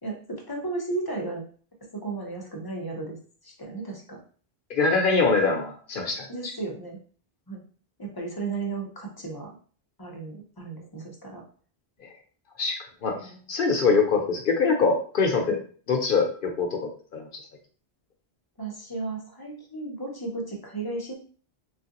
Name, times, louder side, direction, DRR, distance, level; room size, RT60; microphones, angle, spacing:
voice 1, 0.0-1.4 1.9-3.2 3.4-4.2 6.3-7.0 7.5-7.6 8.0-9.5 10.0-11.4 13.0-13.5 15.5-15.6 18.6-21.1, right 3 dB, 25° left, 0 dB, 0.6 m, -34 dB
voice 2, 4.7-6.3 12.6-13.2 13.5-15.6 15.9-17.3, left 4 dB, 60° left, 2 dB, 0.7 m, -23 dB
3.2 x 2.4 x 2.8 m, 0.43 s
omnidirectional pair, 1.1 m